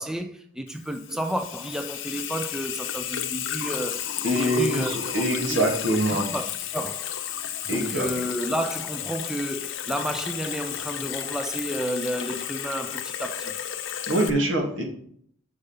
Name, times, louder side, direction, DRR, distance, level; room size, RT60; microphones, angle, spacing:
voice 1, 0.0-5.7 6.0-7.1 7.7-13.5, equal, 5° right, 0.4 m, -31 dB
Water tap faucet / Sink (filling or washing), 0.7-14.3, left 9 dB, 65° left, 0.7 m, -32 dB
voice 2, 4.2-6.2 7.7-8.1 14.1-14.8, right 1 dB, 70° right, 2.2 m, -24 dB
6.6 x 5.1 x 5.1 m
head